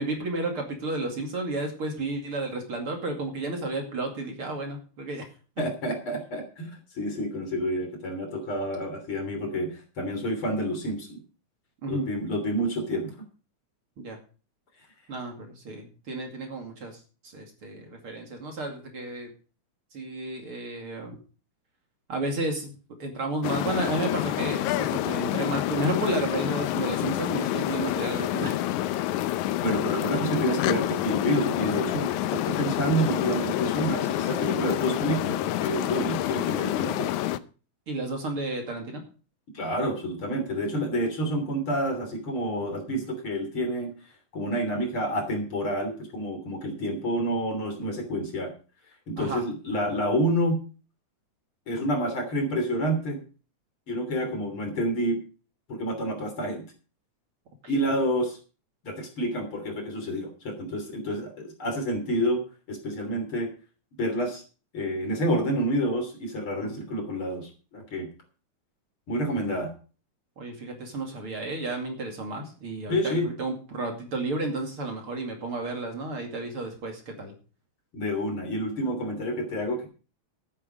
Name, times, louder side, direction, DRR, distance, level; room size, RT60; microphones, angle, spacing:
voice 1, 0.0-5.3 11.8-12.1 14.0-14.2 15.1-19.3 19.9-21.2 22.1-22.7 23.0-28.7 32.5-32.7 37.9-39.0 49.2-49.4 66.6-66.9 70.4-77.3, right 2 dB, 50° right, 3 dB, 3.1 m, -32 dB
voice 2, 5.6-11.2 11.9-13.1 29.6-37.1 39.5-43.9 44.3-48.5 49.1-50.6 51.7-53.2 53.9-55.2 55.7-56.6 57.7-58.4 58.8-62.4 62.7-63.5 64.0-64.4 64.7-68.1 69.1-69.7 72.9-73.3 77.9-79.9, equal, 45° left, 5 dB, 3.9 m, -28 dB
sound 1, 23.4-37.4, left 14 dB, 85° left, 2.1 m, -28 dB
12.5 x 9.7 x 5.1 m, 0.35 s
omnidirectional pair, 3.4 m